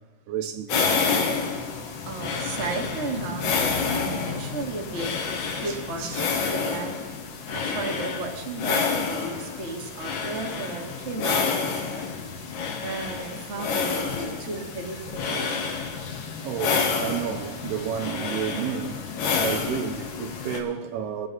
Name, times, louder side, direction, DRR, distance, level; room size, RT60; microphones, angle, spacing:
voice 1, 0.3-0.9 6.0-6.2 16.4-19.1 19.4-21.3, right 8 dB, 85° right, 2.9 m, -31 dB
sound 1, 0.7-20.6, left 5 dB, 85° left, 3.7 m, -29 dB
voice 2, 2.0-5.1 5.5-6.9 7.5-12.2 12.8-15.6, right 3 dB, 35° right, 1.1 m, -34 dB
24.0 x 9.4 x 4.1 m
omnidirectional pair, 4.6 m